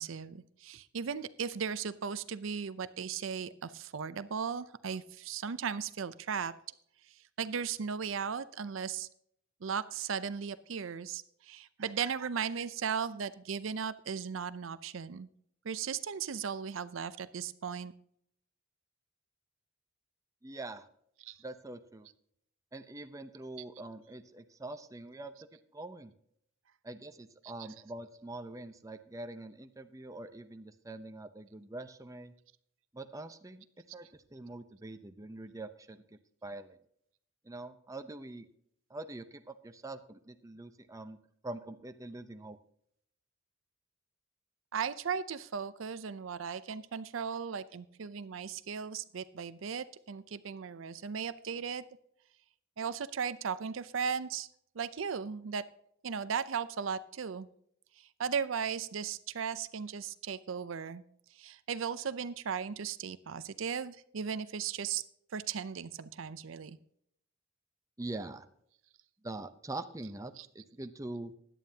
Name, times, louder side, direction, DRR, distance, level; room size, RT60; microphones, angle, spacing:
voice 1, 0.0-6.5 7.1-9.1 9.6-15.3 15.6-17.9 21.2-21.4 44.7-51.8 52.8-54.5 54.8-55.6 56.0-57.5 58.0-61.0 61.3-65.0 65.3-66.8 70.4-70.5, right 6 dB, 70° right, 14 dB, 0.5 m, -37 dB
voice 2, 20.4-20.9 21.4-22.1 22.7-25.3 25.7-26.1 26.8-32.3 32.9-33.6 33.9-36.8 37.4-38.5 38.9-41.2 41.4-42.6 68.0-68.4 69.2-71.3, right 2 dB, 15° right, 9 dB, 0.6 m, -44 dB
16.5 x 11.0 x 2.8 m, 0.69 s
head